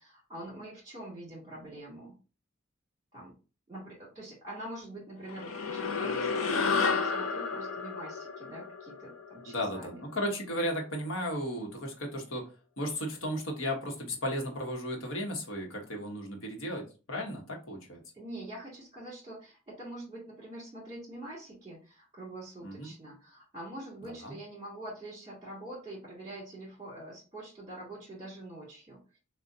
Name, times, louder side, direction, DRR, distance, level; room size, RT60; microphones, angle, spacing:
voice 1, 0.0-2.2 3.1-3.3 3.7-10.0 18.1-29.2, right 1 dB, 20° right, -9 dB, 2.5 m, -45 dB
sound 1, 5.3-10.0, left 5 dB, 85° left, 0.6 m, -32 dB
voice 2, 9.5-12.4 12.8-18.0 22.6-22.9 24.2-24.3, equal, 65° left, 1 dB, 1.2 m, -35 dB
6.4 x 2.4 x 2.7 m, 0.34 s
head